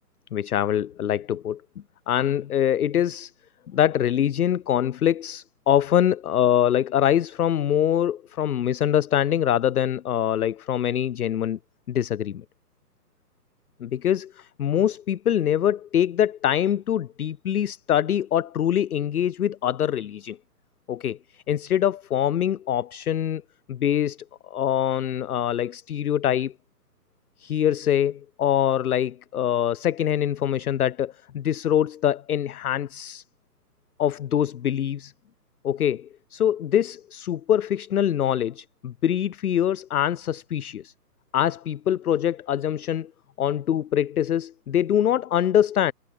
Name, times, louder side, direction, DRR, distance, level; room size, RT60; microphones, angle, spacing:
voice 1, 0.3-1.6 2.1-3.3 3.7-11.6 11.9-12.4 13.8-20.4 20.9-21.2 21.5-23.4 23.7-24.2 24.5-26.5 27.4-33.2 34.0-35.1 35.6-40.9 41.3-43.1 43.4-45.9, left 10 dB, 65° left, 0.6 m, -24 dB
hypercardioid pair, 175°, 49 cm